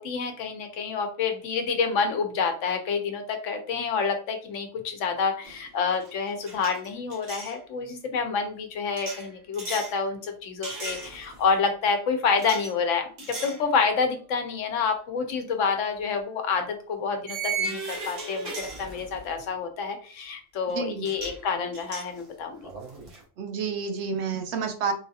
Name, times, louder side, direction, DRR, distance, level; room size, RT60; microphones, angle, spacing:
voice 1, 0.0-22.6, left 5 dB, 80° left, 6 dB, 1.0 m, -28 dB
sound 1, 5.4-5.7 5.9-7.6 9.0-10.0 10.6-11.5 12.4-12.7 13.2-13.6 14.1-14.3 15.8-15.9 17.3-19.3 20.7-20.8 21.0-21.4 21.7-23.2, right 3 dB, 85° right, 1.4 m, -36 dB
voice 2, 20.7-21.1 23.4-24.9, right 5 dB, 70° right, 6 dB, 0.8 m, -29 dB
3.8 x 2.3 x 2.7 m, 0.41 s
omnidirectional pair, 1.3 m